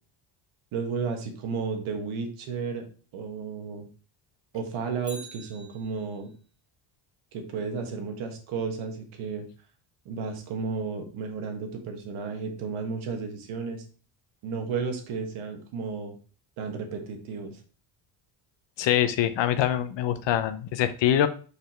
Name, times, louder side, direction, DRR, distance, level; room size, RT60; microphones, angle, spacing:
voice 1, 0.7-2.9 3.1-3.9 4.5-6.3 7.3-9.4 10.0-13.8 14.4-16.1 16.6-17.6, right 5 dB, 80° right, 3 dB, 1.7 m, -33 dB
Bicycle, 5.0-6.4 14.7-14.8, right 1 dB, ahead, 1.2 m, -46 dB
voice 2, 18.8-21.3, left 11 dB, 60° left, 11 dB, 0.8 m, -24 dB
5.1 x 4.6 x 4.4 m, 0.39 s
cardioid pair, 125°, 49 cm